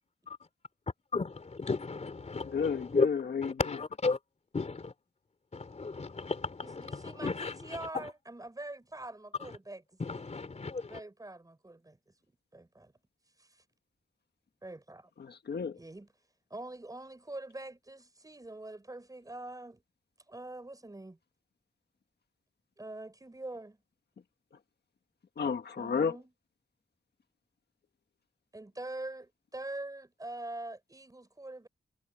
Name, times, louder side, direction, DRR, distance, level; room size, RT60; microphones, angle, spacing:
voice 1, 1.1-3.1 3.4-4.2 4.5-4.9 5.5-8.1 9.4-9.5 10.0-11.0, left 4 dB, 35° left, 3.7 m, -34 dB
voice 2, 2.5-3.5 15.2-15.8 25.4-26.2, left 6 dB, 60° left, 1.5 m, -31 dB
voice 3, 6.6-9.8 10.1-10.2 10.9-12.0 12.3-12.9 13.4-13.6 14.6-15.1 15.7-16.1 16.5-19.8 20.3-21.2 22.8-23.8 25.8-26.3 28.5-31.7, right 2 dB, 20° right, 6.2 m, -44 dB
wide cardioid pair, 170°, 19 cm